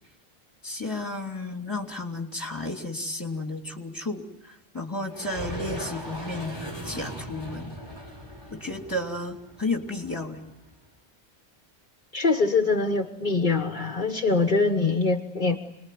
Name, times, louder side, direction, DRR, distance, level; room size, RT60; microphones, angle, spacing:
voice 1, 0.6-6.6 6.8-7.7 8.5-10.4, left 2 dB, 20° left, 3 dB, 3.1 m, -32 dB
sound 1, 5.1-10.7, equal, 25° right, 6.8 m, -39 dB
voice 2, 12.1-15.6, left 3 dB, 50° left, 3 dB, 1.4 m, -23 dB
28.5 x 21.5 x 9.4 m, 0.86 s
omnidirectional pair, 1.1 m